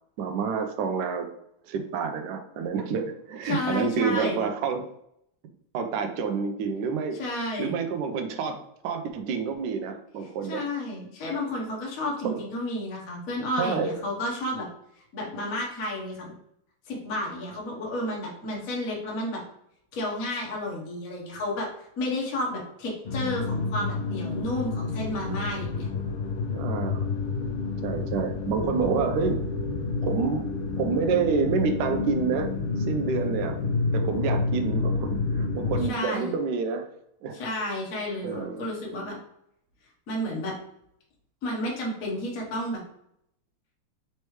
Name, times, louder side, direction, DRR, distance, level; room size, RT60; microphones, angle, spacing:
voice 1, 0.2-1.3 1.6-4.8 5.7-7.2 7.6-8.6 8.8-10.6 12.2-12.4 13.6-13.9 26.5-27.0 27.8-29.4 30.0-32.5 32.9-33.6 33.9-36.9 37.2-37.4 38.2-38.7, right 5 dB, 75° right, 5 dB, 1.0 m, -28 dB
voice 2, 3.4-4.4 7.2-7.8 10.4-14.7 15.1-16.3 16.9-19.4 19.9-21.7 22.0-25.9 35.8-36.3 37.3-39.2 40.1-40.5 41.4-42.8, left 1 dB, 50° left, -3 dB, 1.3 m, -31 dB
sound 1, 23.1-35.9, left 3 dB, 80° left, 1.5 m, -29 dB
4.2 x 3.2 x 3.1 m, 0.75 s
omnidirectional pair, 2.4 m